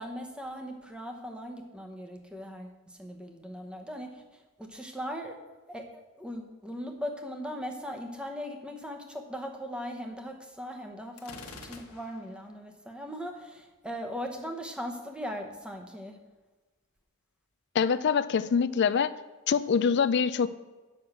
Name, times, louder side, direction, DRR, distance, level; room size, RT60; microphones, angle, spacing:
voice 1, 0.0-4.2 4.6-5.4 5.7-5.9 6.2-16.2, equal, 5° right, 3 dB, 0.9 m, -39 dB
Gunshot gunfire, 11.2-12.4, left 3 dB, 80° left, 1.2 m, -46 dB
voice 2, 17.7-19.1 19.5-20.5, left 6 dB, 50° left, 13 dB, 0.4 m, -24 dB
7.9 x 6.1 x 6.6 m, 1.2 s
head